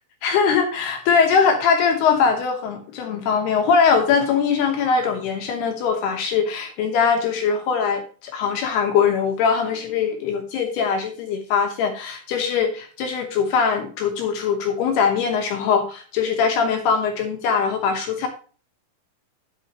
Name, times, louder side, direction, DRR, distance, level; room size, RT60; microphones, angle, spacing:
voice 1, 0.2-18.3, left 6 dB, 70° left, 4 dB, 2.8 m, -21 dB
9.7 x 9.0 x 2.9 m, 0.38 s
omnidirectional pair, 5.5 m